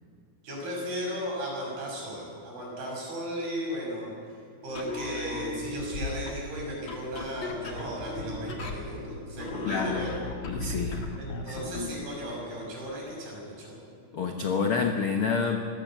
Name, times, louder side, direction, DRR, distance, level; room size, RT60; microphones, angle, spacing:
voice 1, 0.4-4.1 4.6-10.1 11.2-13.8, equal, 85° right, -2 dB, 8.1 m, -35 dB
sound 1, 4.7-12.0, left 3 dB, 40° left, 2.1 m, -36 dB
voice 2, 9.6-10.1 10.4-11.1 11.5-11.7 14.1-15.7, left 5 dB, 85° left, 4 dB, 1.1 m, -28 dB
24.0 x 17.0 x 7.5 m, 2.4 s
omnidirectional pair, 4.4 m